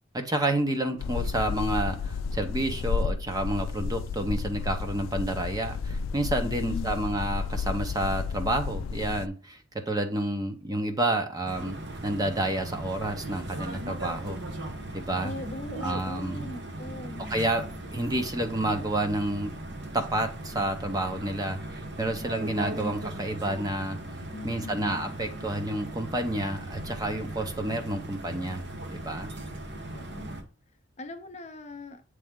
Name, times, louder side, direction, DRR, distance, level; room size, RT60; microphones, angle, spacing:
voice 1, 0.1-11.8 12.0-14.4 14.9-15.3 15.8-16.5 17.2-19.5 19.9-24.0 24.4-28.6 28.9-29.3, right 1 dB, 20° right, 0.7 m, -30 dB
sound 1, 1.0-9.3, left 5 dB, 85° left, 0.3 m, -32 dB
voice 2, 6.4-7.0 15.2-17.2 24.3-25.0 29.9-30.4 31.0-32.0, left 2 dB, 35° left, 0.6 m, -40 dB
sound 2, 11.4-30.4, right 1 dB, 60° right, 1.1 m, -38 dB
8.2 x 3.3 x 3.7 m
head